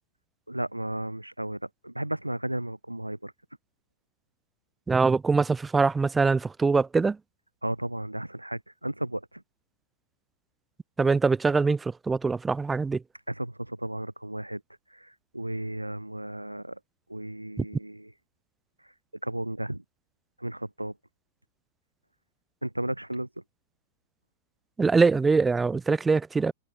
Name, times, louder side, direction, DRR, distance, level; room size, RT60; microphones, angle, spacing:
voice 1, 0.5-3.3 7.6-9.4 13.3-14.6 14.9-16.8 17.1-18.1 19.2-19.8 20.4-20.9 22.6-23.3, right 1 dB, 90° right, 1.3 m, -34 dB
voice 2, 4.9-7.2 11.0-13.0 17.6-17.7 24.8-26.5, right 4 dB, 10° right, 0.7 m, -23 dB
figure-of-eight pair, 100°, 0 cm